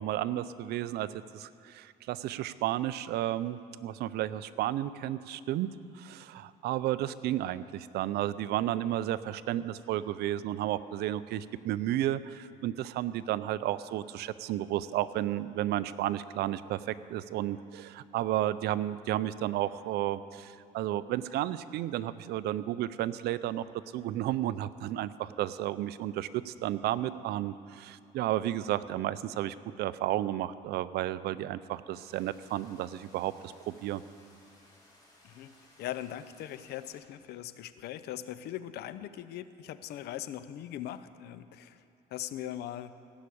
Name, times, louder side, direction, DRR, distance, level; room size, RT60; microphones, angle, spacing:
voice 1, 0.0-23.6 23.9-34.0, right 13 dB, 75° right, 15 dB, 0.5 m, -32 dB
sound 1, 31.9-37.0, left 1 dB, 20° left, 3.7 m, -61 dB
voice 2, 35.2-41.8 42.1-43.0, left 12 dB, 75° left, 13 dB, 0.6 m, -40 dB
16.5 x 6.3 x 8.4 m, 2.5 s
cardioid pair, 110°, 17 cm